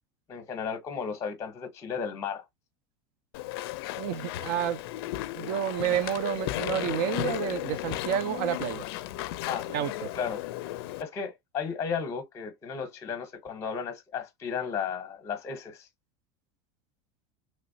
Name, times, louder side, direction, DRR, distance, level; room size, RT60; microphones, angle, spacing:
voice 1, 0.3-2.4 9.5-9.7 10.1-10.4 11.0-15.9, left 6 dB, 20° left, 0.8 m, -34 dB
Walk footsteps / Chatter / Squeak, 3.3-11.0, left 15 dB, 70° left, 0.4 m, -35 dB
voice 2, 4.0-4.8 5.3-8.8 9.7-10.1, right 10 dB, 55° right, 0.5 m, -30 dB
3.1 x 3.0 x 2.6 m
supercardioid pair, 150°, 13 cm